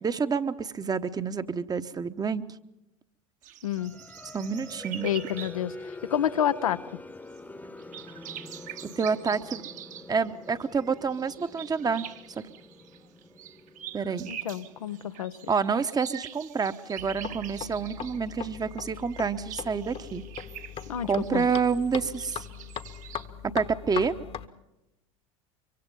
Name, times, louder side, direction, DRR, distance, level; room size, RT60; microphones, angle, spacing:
voice 1, 0.0-2.4 4.3-5.1 9.0-9.6 10.1-12.0 12.4-12.5 13.9-14.3 15.5-20.2 21.1-22.5 23.5-24.1, right 5 dB, 20° right, 11 dB, 1.1 m, -28 dB
sound 1, 3.4-6.4 6.7-6.9 7.3-7.4 7.6-23.3, right 10 dB, 45° right, 1.4 m, -45 dB
voice 2, 3.6-3.9 5.0-6.8 14.3-15.3 20.9-21.5, left 10 dB, 80° left, 11 dB, 0.8 m, -29 dB
sound 2, 3.8-16.3, left 2 dB, 10° left, 1.1 m, -46 dB
sound 3, 17.0-24.5, left 8 dB, 35° left, 1.1 m, -40 dB
24.5 x 24.0 x 5.4 m, 0.91 s
hypercardioid pair, 75°, 18 cm